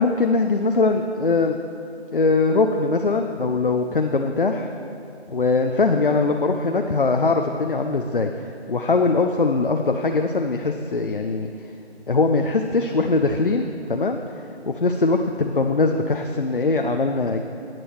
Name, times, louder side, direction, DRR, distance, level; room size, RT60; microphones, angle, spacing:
voice 1, 0.0-1.6 2.1-4.7 5.3-8.3 8.7-11.5 12.1-14.2 14.7-17.4, left 3 dB, 50° left, 4 dB, 0.5 m, -21 dB
18.5 x 7.7 x 3.0 m, 2.5 s
figure-of-eight pair, 160°, 34 cm